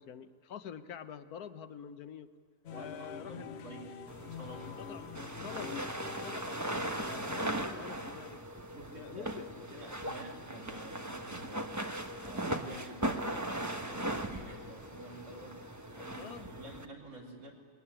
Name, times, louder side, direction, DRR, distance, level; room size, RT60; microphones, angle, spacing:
voice 1, 0.0-2.3 2.7-3.6 4.8-5.2 5.4-5.9 6.2-8.4 9.0-9.9 16.2-16.5, left 8 dB, 80° left, 11 dB, 1.4 m, -46 dB
sound 1, 2.6-8.1, left 8 dB, 55° left, 0.9 m, -47 dB
voice 2, 2.7-4.8 8.7-11.8 12.2-15.6 15.9-17.5, right 1 dB, 70° right, -2 dB, 4.3 m, -50 dB
sound 2, 4.1-16.8, right 1 dB, 15° right, 1.1 m, -38 dB
21.0 x 18.5 x 10.0 m, 2.2 s
omnidirectional pair, 1.6 m